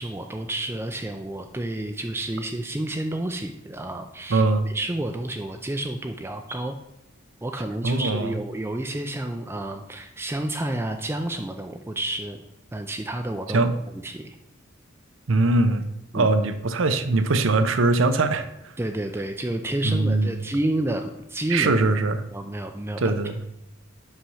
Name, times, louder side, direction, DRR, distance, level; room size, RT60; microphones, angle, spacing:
voice 1, 0.0-6.8 7.4-12.4 12.7-13.7 13.9-14.4 16.1-16.3 18.8-21.7 22.3-23.0, right 1 dB, 10° right, 5 dB, 0.4 m, -30 dB
voice 2, 4.3-4.7 7.8-8.4 13.5-13.7 15.3-15.9 16.1-18.5 19.8-20.5 21.5-22.2 23.0-23.4, right 3 dB, 75° right, 10 dB, 0.7 m, -21 dB
5.8 x 5.8 x 5.6 m, 0.87 s
head